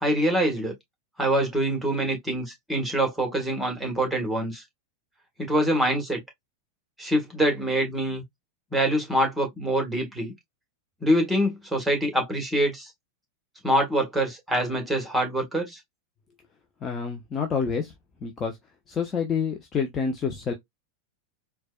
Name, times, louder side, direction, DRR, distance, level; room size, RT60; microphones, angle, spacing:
voice 1, 0.0-0.7 1.2-4.6 5.4-6.2 7.0-8.2 8.7-10.3 11.0-12.9 13.6-15.8, right 1 dB, 5° right, 1.4 m, -25 dB
voice 2, 16.8-17.9 18.2-18.6 18.9-20.5, left 6 dB, 25° left, 0.7 m, -28 dB
4.3 x 2.2 x 2.3 m
figure-of-eight pair, 90°, 0 cm